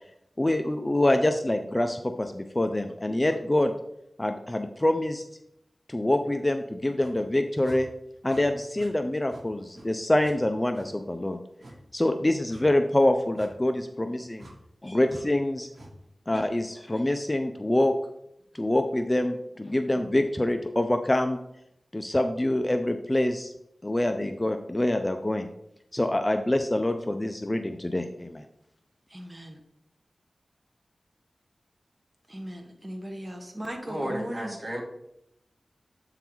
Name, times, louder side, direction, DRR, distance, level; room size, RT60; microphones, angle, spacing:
voice 1, 0.4-3.7 4.2-5.2 5.9-7.9 8.2-11.4 11.9-14.5 14.8-15.7 16.3-17.9 18.5-21.4 21.9-23.5 23.8-25.5 25.9-28.4, left 1 dB, 20° left, 7 dB, 0.5 m, -25 dB
sound 1, 7.0-7.2 7.6-7.8 8.2-8.4 8.8-8.9 9.3-9.5 9.7-9.9 10.2-10.4 10.7-10.9 11.6-11.8 12.5-12.7 13.3-13.5 14.4-14.6 15.1-15.2 15.7-15.9, right 1 dB, 65° right, 1.3 m, -47 dB
voice 2, 29.1-29.6 32.3-34.5, equal, 20° right, 2 dB, 1.2 m, -37 dB
voice 3, 33.9-34.8, equal, 35° right, -1 dB, 1.9 m, -33 dB
8.1 x 3.9 x 4.5 m, 0.77 s
wide cardioid pair, 85°, 0 cm